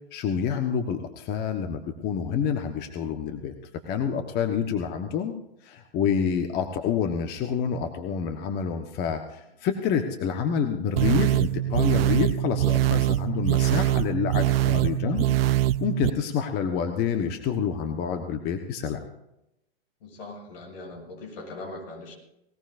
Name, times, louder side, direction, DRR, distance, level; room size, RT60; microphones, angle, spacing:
voice 1, 0.1-3.5 3.9-5.3 5.6-19.0, left 7 dB, 35° left, 6 dB, 1.3 m, -28 dB
sound 1, 11.0-16.1, right 14 dB, 70° right, 0.5 m, -23 dB
voice 2, 20.0-22.2, left 2 dB, 70° left, 2 dB, 7.4 m, -40 dB
20.0 x 19.5 x 2.6 m, 0.86 s
hypercardioid pair, 130°, 31 cm